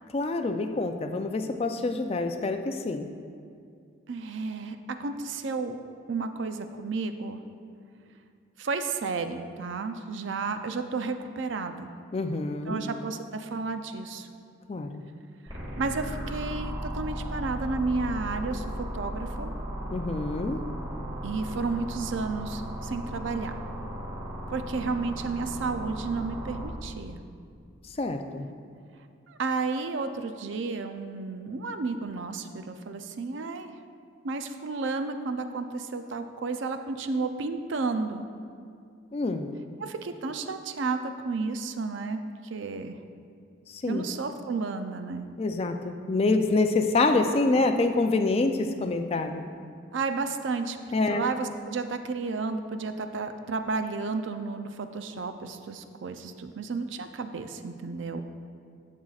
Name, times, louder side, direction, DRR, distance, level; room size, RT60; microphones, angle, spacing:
voice 1, 0.1-3.1 12.1-12.8 14.7-15.0 19.9-20.6 28.0-28.5 39.1-39.5 43.7-44.0 45.4-49.4 50.9-51.3, left 3 dB, 30° left, 6 dB, 0.4 m, -26 dB
voice 2, 4.1-5.8 6.1-7.4 8.6-11.9 12.7-14.3 15.8-19.5 21.2-23.5 24.5-27.2 29.3-33.7 34.2-38.2 39.8-42.2 42.5-43.0 43.9-45.3 49.9-50.8 51.1-58.2, right 4 dB, 70° right, 7 dB, 0.5 m, -32 dB
sound 1, 15.5-26.6, equal, 25° right, 2.0 m, -36 dB
11.5 x 7.3 x 2.4 m, 2.3 s
head